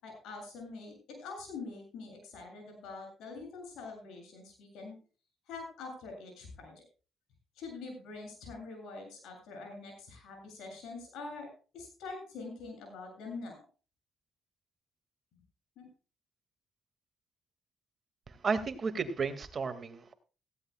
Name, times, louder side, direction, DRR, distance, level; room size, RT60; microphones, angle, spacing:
voice 1, 0.0-5.0 5.5-6.7 7.6-11.5 11.7-13.6 15.8-15.9, left 3 dB, 85° left, 3 dB, 7.8 m, -45 dB
voice 2, 18.3-20.1, right 5 dB, 40° right, 9 dB, 2.1 m, -33 dB
17.5 x 15.5 x 2.3 m, 0.35 s
cardioid pair, 90°, 0 cm